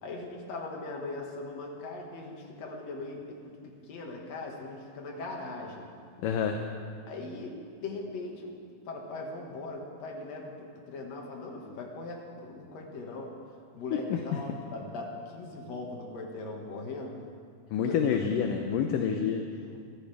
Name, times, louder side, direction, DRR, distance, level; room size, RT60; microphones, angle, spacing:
voice 1, 0.0-5.9 7.1-8.6 8.9-13.4 13.7-17.2 17.8-18.0 19.6-19.8, left 2 dB, 50° left, 0 dB, 2.8 m, -40 dB
voice 2, 6.2-6.6 13.9-14.4 17.7-19.4, left 7 dB, 75° left, 4 dB, 2.2 m, -28 dB
26.0 x 15.0 x 3.5 m, 2.1 s
omnidirectional pair, 4.4 m